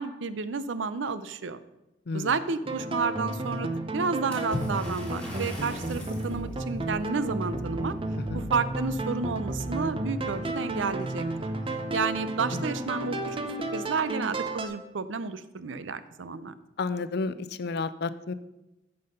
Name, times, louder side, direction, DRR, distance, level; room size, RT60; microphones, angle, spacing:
voice 1, 0.0-1.6 2.1-7.9 8.3-11.3 11.9-13.4 13.7-16.5, right 4 dB, 75° right, 13 dB, 0.6 m, -31 dB
sound 1, 2.6-14.7, right 2 dB, 30° right, 0.8 m, -32 dB
Water / Splash splatter, 4.3-6.4, left 1 dB, 5° left, 3.3 m, -37 dB
voice 2, 16.8-18.3, left 4 dB, 60° left, 14 dB, 0.5 m, -31 dB
9.4 x 5.6 x 6.7 m, 0.95 s
head